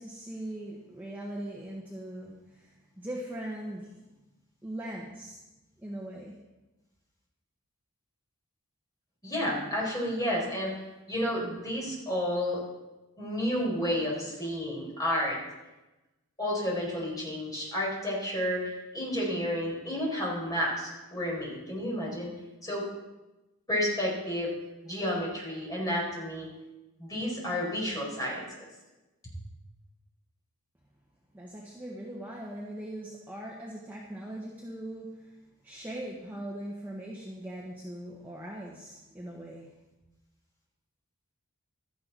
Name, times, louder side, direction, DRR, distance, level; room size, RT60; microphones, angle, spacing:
voice 1, 0.0-3.9 4.6-5.4 5.8-6.4 31.3-35.4 35.6-39.7, right 1 dB, 10° right, -4 dB, 1.5 m, -40 dB
voice 2, 9.2-10.7 11.1-12.6 13.2-15.4 16.4-22.3 22.6-22.8 23.7-24.5 24.8-26.5 27.0-28.5, equal, 15° left, -4 dB, 5.0 m, -31 dB
16.5 x 13.0 x 4.2 m, 1.1 s
head